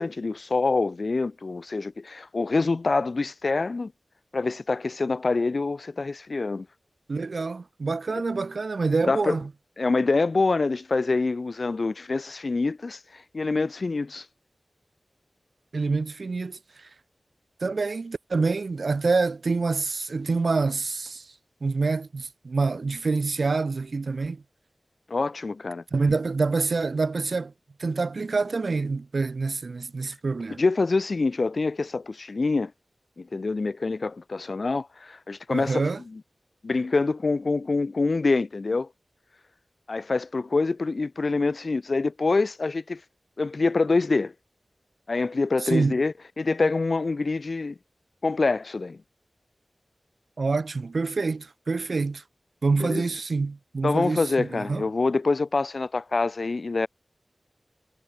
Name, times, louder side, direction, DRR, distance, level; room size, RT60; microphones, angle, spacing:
voice 1, 0.0-3.9 4.3-6.7 9.1-9.4 9.8-13.0 13.3-14.2 25.1-25.8 30.6-32.7 33.2-35.8 36.1-36.2 36.6-38.9 39.9-43.0 43.4-44.3 45.1-47.7 48.2-49.0 52.8-53.0 53.8-56.9, left 3 dB, 60° left, 1.0 m, -25 dB
voice 2, 7.1-9.5 15.7-16.9 17.6-21.3 21.6-24.4 25.9-27.5 27.8-30.6 35.5-36.0 45.6-46.0 50.4-52.2 52.6-54.9, right 4 dB, 75° right, 0.6 m, -26 dB
wide cardioid pair, 70°, 0 cm